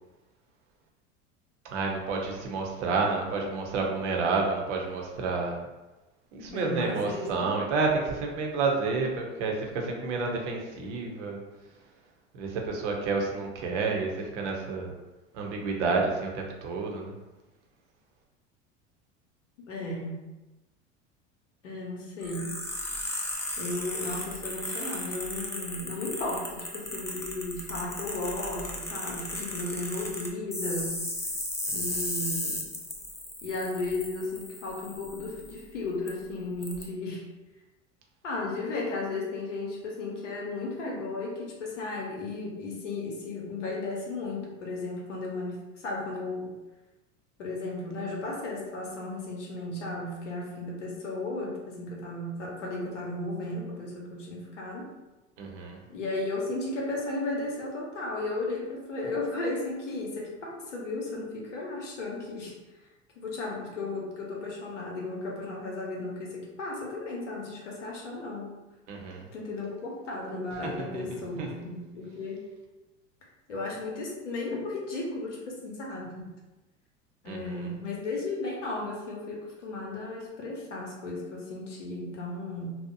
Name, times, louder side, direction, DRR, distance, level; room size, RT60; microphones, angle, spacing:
voice 1, 1.7-5.6 6.3-11.4 12.3-14.9 15.3-17.1 31.7-32.1 55.4-55.8 68.9-69.3 70.8-71.0 71.4-71.5 77.3-77.7, right 4 dB, 75° right, 1 dB, 0.7 m, -30 dB
voice 2, 6.5-7.5 19.7-20.2 21.6-22.6 23.6-31.0 31.7-32.6 33.4-37.2 38.2-46.5 47.4-54.9 55.9-62.5 63.2-68.5 69.3-72.4 73.5-76.3 77.2-82.7, left 2 dB, 90° left, -2 dB, 0.7 m, -35 dB
sound 1, 22.2-35.6 36.1-36.2 36.6-36.8, left 1 dB, 10° left, 0.4 m, -36 dB
2.7 x 2.0 x 2.5 m, 1.1 s
hypercardioid pair, 80°, 36 cm